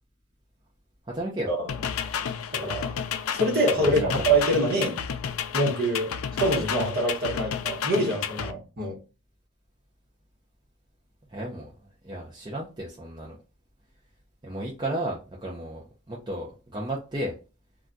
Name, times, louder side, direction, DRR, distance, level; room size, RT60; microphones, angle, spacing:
voice 1, 1.1-1.5 3.8-4.4 11.3-11.7 12.0-13.4 14.4-17.3, right 1 dB, 20° right, 0.5 m, -33 dB
sound 1, 1.7-8.5, left 7 dB, 65° left, 0.3 m, -31 dB
voice 2, 2.5-2.9 3.3-5.0 5.5-9.0, right 1 dB, 45° right, 1.1 m, -25 dB
2.3 x 2.2 x 3.8 m
head